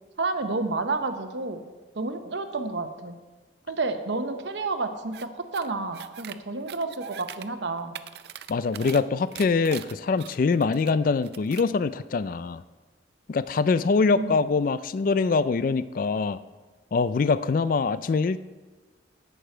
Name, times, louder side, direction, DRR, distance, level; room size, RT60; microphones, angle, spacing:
voice 1, 0.2-1.6 1.9-3.2 3.7-8.0 14.1-14.4, right 3 dB, 80° right, 7 dB, 0.9 m, -30 dB
sound 1, 5.1-5.3 5.5-6.4 6.7-7.5 7.8-9.0 9.3-10.9 11.2-11.7, right 9 dB, 60° right, 0.4 m, -41 dB
voice 2, 8.5-12.6 13.3-16.4 16.9-18.4, left 4 dB, 50° left, 15 dB, 0.3 m, -24 dB
11.5 x 8.8 x 4.5 m, 1.3 s
head